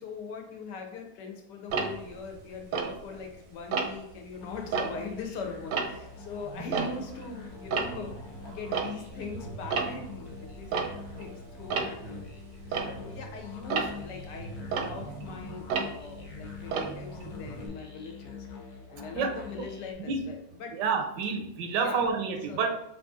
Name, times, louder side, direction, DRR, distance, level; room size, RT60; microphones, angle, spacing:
voice 1, 0.0-8.1 8.5-10.7 11.2-12.2 12.7-18.5 18.9-20.7 21.6-22.1 22.5-22.7, left 4 dB, 85° left, 3 dB, 1.4 m, -41 dB
Tick-tock, 1.7-3.3 3.7-4.1 4.6-7.3 7.6-17.7, right 5 dB, 65° right, 0.8 m, -34 dB
sound 1, 4.4-19.9, left 5 dB, 65° left, 1.2 m, -45 dB
voice 2, 19.1-19.7 20.1-20.2 20.7-22.8, right 5 dB, 85° right, 6 dB, 1.3 m, -29 dB
3.9 x 2.6 x 3.6 m, 0.81 s
omnidirectional pair, 1.8 m